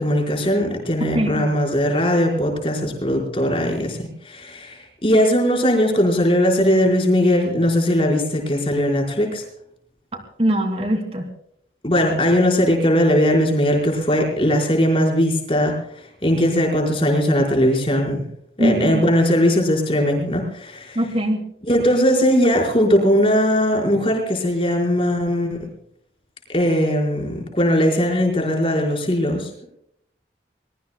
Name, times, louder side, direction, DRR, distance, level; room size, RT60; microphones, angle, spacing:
voice 1, 0.0-9.4 11.8-15.7 16.2-18.2 18.6-21.0 21.6-25.6 26.5-29.7, equal, 30° left, 1 dB, 5.0 m, -19 dB
voice 2, 1.0-1.4 10.4-11.3 18.6-19.0 20.9-21.4, equal, 35° right, 6 dB, 2.6 m, -21 dB
23.5 x 21.5 x 2.3 m, 0.70 s
head